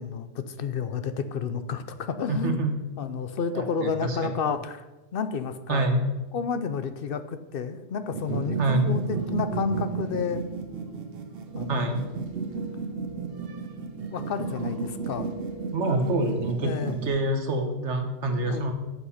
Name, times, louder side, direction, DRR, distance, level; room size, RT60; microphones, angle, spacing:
voice 1, 0.0-2.6 3.0-4.8 5.1-5.8 6.3-10.4 11.5-11.9 13.5-15.3 16.6-17.0 18.3-18.7, left 6 dB, 60° left, 10 dB, 0.8 m, -31 dB
voice 2, 2.3-2.8 3.5-4.3 5.7-6.0 8.6-8.9 11.7-12.0 15.7-18.7, right 2 dB, 80° right, 5 dB, 1.4 m, -26 dB
sound 1, 8.1-17.1, right 5 dB, 55° right, 1.0 m, -33 dB
7.9 x 6.2 x 5.7 m, 1.1 s
omnidirectional pair, 1.2 m